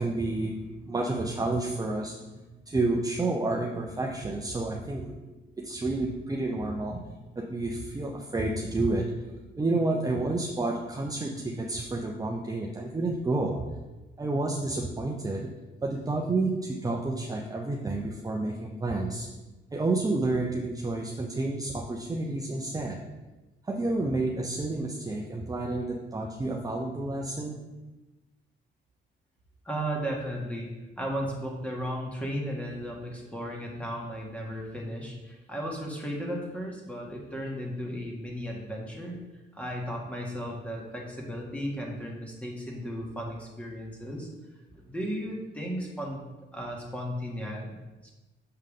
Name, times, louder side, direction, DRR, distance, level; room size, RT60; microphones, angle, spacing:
voice 1, 0.0-13.7 14.2-15.5 15.8-19.3 19.7-23.0 23.6-27.6, right 2 dB, 20° right, -1 dB, 0.7 m, -30 dB
voice 2, 29.6-39.2 39.5-44.3 44.8-46.2 46.5-48.1, equal, 5° left, -1 dB, 1.8 m, -35 dB
6.7 x 5.6 x 3.8 m, 1.1 s
cardioid pair, 90°, 20 cm